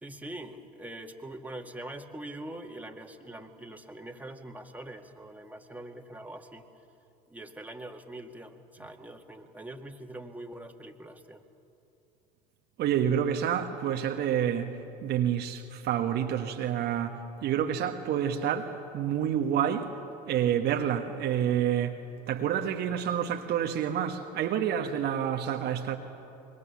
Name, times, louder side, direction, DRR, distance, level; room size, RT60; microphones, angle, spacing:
voice 1, 0.0-6.7 7.3-11.4, right 1 dB, 5° right, 2.1 m, -43 dB
voice 2, 12.8-14.7 15.0-19.9 20.3-22.0 22.3-26.0, right 9 dB, 55° right, 1.4 m, -28 dB
25.5 x 22.0 x 7.2 m
hypercardioid pair, 75°, 21 cm